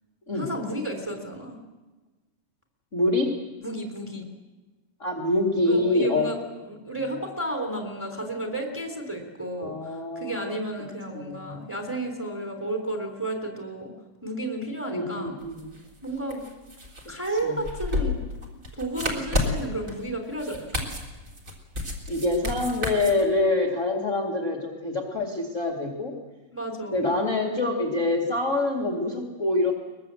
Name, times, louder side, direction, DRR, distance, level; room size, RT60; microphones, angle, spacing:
voice 1, 0.3-1.6 3.6-4.3 5.6-6.4 6.6-13.9 14.2-15.4 16.0-16.4 17.1-18.2 18.7-20.9 26.5-27.1, right 1 dB, 5° right, 3 dB, 3.2 m, -32 dB
voice 2, 2.9-3.4 5.0-6.3 9.6-10.6 11.1-11.6 14.9-15.7 17.4-17.6 22.1-26.2 26.9-29.7, left 2 dB, 25° left, 1 dB, 2.2 m, -26 dB
sound 1, 15.4-23.2, left 2 dB, 25° right, 3.4 m, -31 dB
23.0 x 21.5 x 7.7 m, 1.2 s
omnidirectional pair, 3.9 m